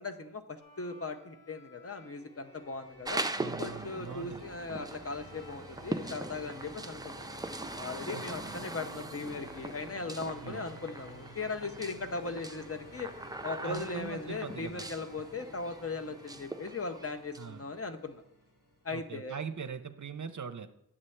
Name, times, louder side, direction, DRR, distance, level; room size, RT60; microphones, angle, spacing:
voice 1, 0.0-3.3 3.6-7.3 7.8-13.1 13.4-18.2 18.8-19.4, left 3 dB, 40° left, 8 dB, 0.7 m, -38 dB
Bowed string instrument, 0.6-18.0, left 2 dB, 85° left, 2.8 m, -59 dB
sound 1, 1.9-19.7, right 1 dB, 60° left, 3.5 m, -54 dB
sound 2, 3.0-17.5, right 2 dB, 10° right, 0.4 m, -41 dB
voice 2, 3.4-4.8 8.1-8.6 10.4-10.6 13.6-14.8 17.4-17.7 18.9-20.7, right 6 dB, 55° right, 10 dB, 0.6 m, -42 dB
9.8 x 7.4 x 3.3 m, 0.78 s
wide cardioid pair, 60°, 36 cm